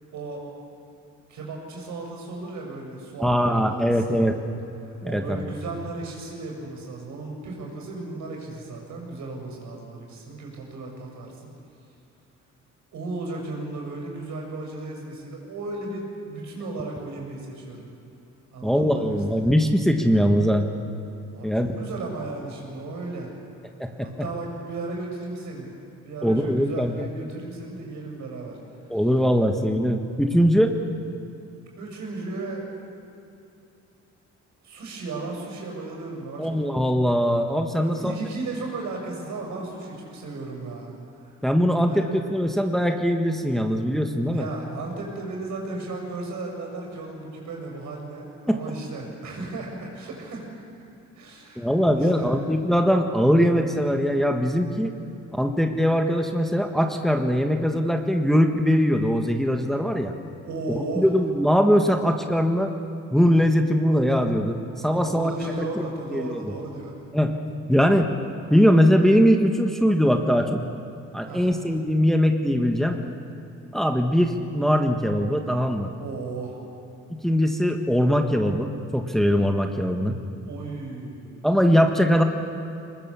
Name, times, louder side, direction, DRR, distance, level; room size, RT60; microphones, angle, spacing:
voice 1, 0.1-0.4 1.3-4.3 4.9-11.5 12.9-17.9 18.5-19.5 21.3-23.3 24.0-25.7 26.1-28.8 31.8-32.7 34.6-36.5 37.8-40.9 41.2-41.4 41.9-42.1 44.3-50.6 51.1-52.3 60.4-61.1 64.7-66.9 71.2-71.5 76.0-76.6 80.4-81.5, right 3 dB, 75° right, 0 dB, 6.7 m, -35 dB
voice 2, 3.2-4.3 5.0-5.5 18.6-20.7 21.4-21.7 23.8-24.3 26.2-27.1 28.9-30.7 36.4-38.1 41.4-44.5 48.5-48.6 51.6-54.9 55.3-60.1 60.7-62.7 63.1-64.6 64.8-65.8 66.1-66.4 67.1-67.3 67.7-68.1 68.5-70.6 71.1-73.0 73.7-75.9 77.1-80.2 81.4-82.2, equal, ahead, 4 dB, 1.6 m, -21 dB
24.5 x 20.5 x 7.2 m, 2.6 s
cardioid pair, 90°, 30 cm